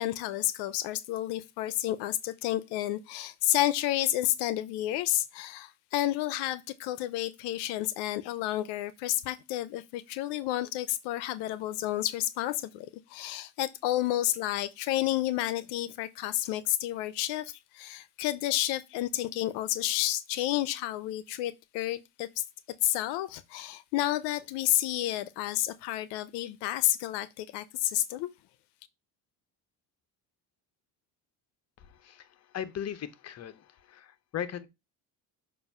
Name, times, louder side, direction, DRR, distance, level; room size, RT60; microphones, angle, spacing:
voice 1, 0.0-22.4 22.8-28.3, left 14 dB, 85° left, 0.6 m, -30 dB
voice 2, 32.5-33.6 33.9-34.7, left 9 dB, 40° left, 0.8 m, -37 dB
6.8 x 2.6 x 5.4 m
cardioid pair, 100°, 40 cm